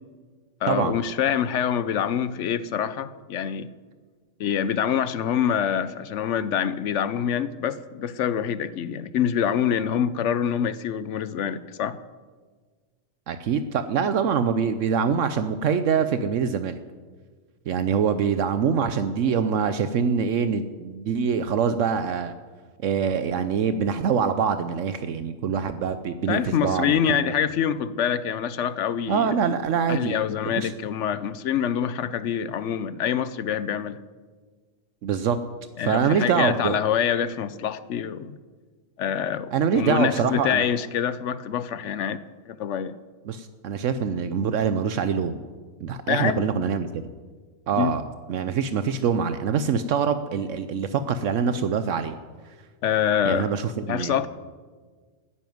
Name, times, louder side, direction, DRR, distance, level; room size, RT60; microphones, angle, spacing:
voice 1, 0.6-3.7 4.4-12.0 26.3-29.4 29.9-34.0 35.8-38.4 39.0-42.2 42.5-43.0 46.1-46.4 47.8-47.9 52.8-53.5 53.9-54.3, left 8 dB, 70° left, 15 dB, 0.9 m, -25 dB
voice 2, 13.3-16.8 17.7-22.3 22.8-27.3 29.1-30.2 30.4-30.7 35.0-35.4 35.8-36.8 39.5-40.6 43.3-45.4 45.8-47.0 47.7-48.0 48.3-52.2 53.2-54.2, right 6 dB, 75° right, 11 dB, 1.0 m, -24 dB
12.5 x 10.0 x 9.3 m, 1.5 s
omnidirectional pair, 1.3 m